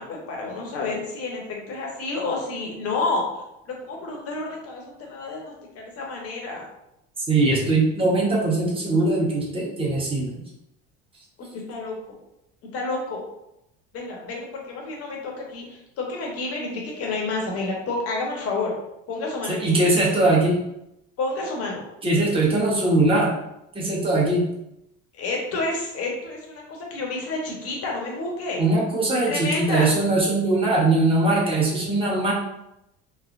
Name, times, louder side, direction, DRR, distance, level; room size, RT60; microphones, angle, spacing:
voice 1, 0.0-3.2 3.7-6.7 11.4-12.2 12.7-13.2 13.9-18.7 19.1-19.8 21.2-21.8 25.2-28.6 29.1-29.9, left 3 dB, 50° left, -1 dB, 1.0 m, -30 dB
voice 2, 7.3-10.3 19.5-20.6 22.0-23.3 23.7-24.4 28.6-32.3, right 2 dB, 15° right, -5 dB, 1.0 m, -21 dB
3.2 x 2.0 x 2.4 m, 0.84 s
supercardioid pair, 105°, 30 cm